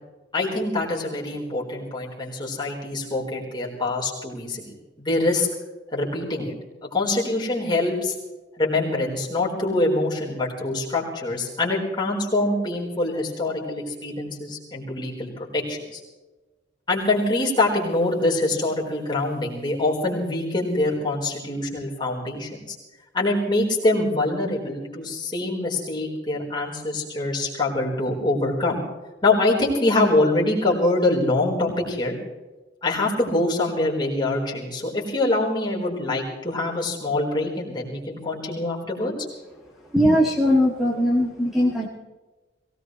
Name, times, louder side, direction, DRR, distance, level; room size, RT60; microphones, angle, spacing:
voice 1, 0.3-5.5 5.9-6.5 6.8-8.1 8.6-16.0 16.9-22.8 23.1-28.8 29.2-32.2 32.8-39.1 40.0-40.1, left 2 dB, 25° left, -3 dB, 4.2 m, -24 dB
voice 2, 39.9-41.9, equal, ahead, -4 dB, 1.8 m, -20 dB
22.5 x 18.0 x 3.2 m, 1.2 s
head